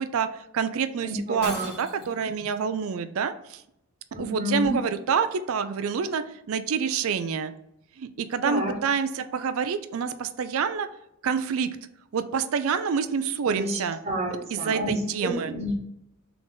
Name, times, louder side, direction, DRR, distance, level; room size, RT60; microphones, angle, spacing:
voice 1, 0.0-3.6 4.2-7.5 8.0-10.9 11.2-11.7 12.1-14.0 14.5-15.5, right 6 dB, 65° right, 11 dB, 0.4 m, -27 dB
voice 2, 1.0-1.7 4.1-4.7 8.4-8.7 13.5-15.8, equal, 30° right, -1 dB, 1.2 m, -30 dB
Shatter, 1.4-2.3, left 1 dB, 45° left, 1.8 m, -38 dB
3.8 x 3.4 x 3.9 m, 0.80 s
head